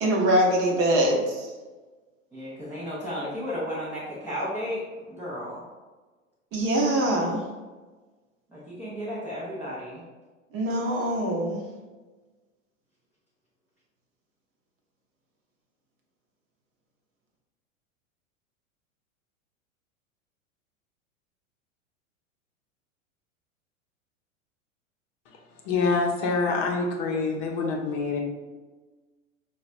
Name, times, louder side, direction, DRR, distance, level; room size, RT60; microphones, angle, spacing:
voice 1, 0.0-1.5 6.5-7.4 10.5-11.6, right 1 dB, 35° right, 0 dB, 0.7 m, -23 dB
voice 2, 2.3-5.6 8.5-10.0, equal, 5° right, -8 dB, 0.4 m, -33 dB
voice 3, 25.6-28.2, left 4 dB, 45° left, 1 dB, 0.7 m, -26 dB
4.8 x 2.2 x 2.5 m, 1.3 s
figure-of-eight pair, 95°, 40 cm